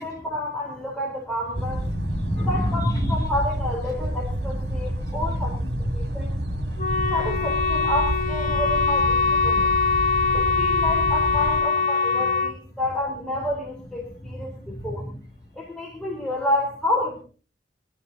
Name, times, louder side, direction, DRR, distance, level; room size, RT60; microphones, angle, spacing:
voice 1, 0.0-1.9 2.4-5.6 5.9-6.3 7.1-9.7 10.3-15.1 15.5-17.2, left 1 dB, 5° left, -3 dB, 3.7 m, -29 dB
sound 1, 1.5-11.6, right 1 dB, 60° right, 2.5 m, -29 dB
voice 2, 1.7-3.2 4.4-7.1 10.2-10.3 14.2-15.2, equal, 20° left, -3 dB, 7.7 m, -31 dB
Wind instrument woodwind instrument, 6.8-12.5, left 5 dB, 45° left, 1.3 m, -23 dB
22.0 x 12.5 x 4.0 m, 0.40 s
head